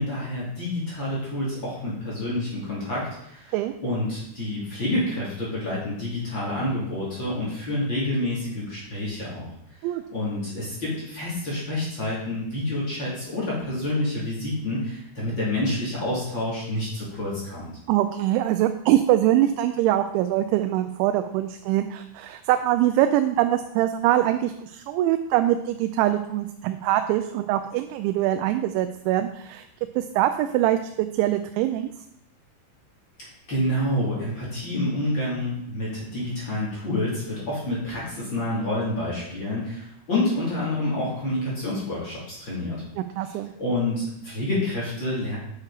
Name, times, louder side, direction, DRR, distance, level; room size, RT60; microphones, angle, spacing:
voice 1, 0.0-3.6 3.8-9.5 9.8-17.7 33.2-42.8 43.2-45.4, left 1 dB, 30° left, -7 dB, 2.7 m, -28 dB
voice 2, 17.9-29.6 30.0-31.9 43.2-43.5, right 13 dB, 90° right, 8 dB, 2.9 m, -23 dB
8.3 x 6.6 x 4.8 m, 0.75 s
omnidirectional pair, 5.2 m